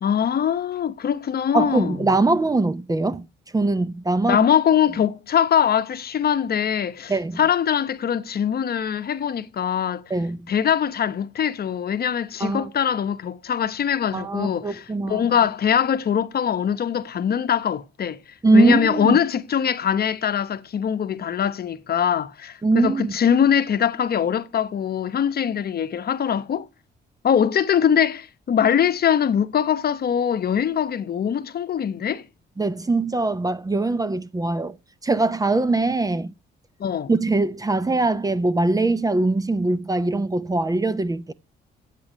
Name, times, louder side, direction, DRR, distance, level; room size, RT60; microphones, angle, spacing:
voice 1, 0.0-2.0 4.3-10.0 10.5-18.2 18.5-26.7 27.2-32.3 36.8-37.1, left 8 dB, 50° left, 0.9 m, -22 dB
voice 2, 1.5-3.3 3.5-4.4 7.1-7.4 10.1-10.5 12.4-12.7 14.1-15.5 18.4-19.2 22.6-23.1 32.6-34.8 35.0-36.3 37.1-41.3, right 2 dB, 20° right, 0.6 m, -22 dB
8.6 x 8.4 x 5.0 m
cardioid pair, 90°, 20 cm